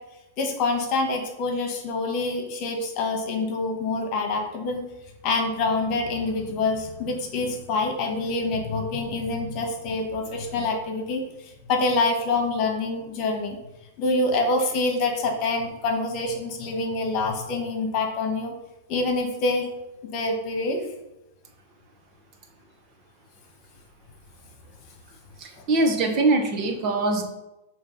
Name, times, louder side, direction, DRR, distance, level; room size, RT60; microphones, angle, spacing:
voice 1, 0.4-4.8 5.2-13.6 14.0-18.5 18.9-19.7 20.0-20.8, left 3 dB, 40° left, 3 dB, 1.5 m, -26 dB
voice 2, 25.4-27.2, right 2 dB, 40° right, 4 dB, 1.1 m, -22 dB
7.2 x 3.1 x 5.5 m, 0.95 s
hypercardioid pair, 140°, 0 cm